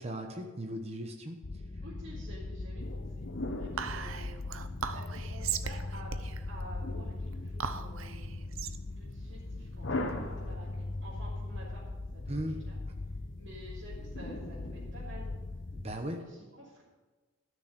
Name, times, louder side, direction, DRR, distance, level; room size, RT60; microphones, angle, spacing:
voice 1, 0.0-1.4 12.3-12.6 15.7-16.2, right 1 dB, 30° right, 3 dB, 1.0 m, -37 dB
sound 1, 1.4-16.0, left 2 dB, 45° left, 0.6 m, -40 dB
voice 2, 1.8-4.4 4.9-8.3 8.9-11.8 12.1-12.8 13.4-15.3 16.2-16.8, equal, 60° right, -10 dB, 3.1 m, -50 dB
sound 2, 2.8-5.1 6.8-8.0 9.8-11.2 14.1-15.6, left 1 dB, 60° left, 1.1 m, -41 dB
Whispering, 3.8-10.4, right 7 dB, 80° right, 0.7 m, -39 dB
12.5 x 6.4 x 8.2 m, 1.3 s
head